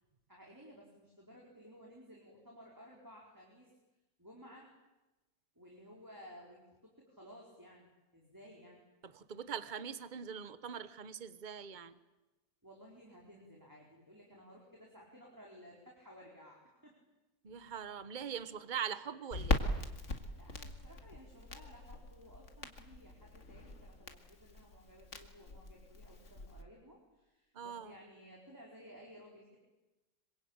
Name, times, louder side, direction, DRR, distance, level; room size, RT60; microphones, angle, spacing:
voice 1, 0.3-3.7 4.2-4.7 5.5-8.8 12.6-17.0 20.3-29.6, equal, 10° right, -2 dB, 4.7 m, -56 dB
voice 2, 9.0-12.0 17.4-19.6 27.5-28.0, right 7 dB, 30° right, 13 dB, 1.1 m, -42 dB
Crackle, 19.3-26.6, left 2 dB, 45° left, 2.2 m, -40 dB
26.5 x 24.5 x 8.9 m, 1.0 s
omnidirectional pair, 1.9 m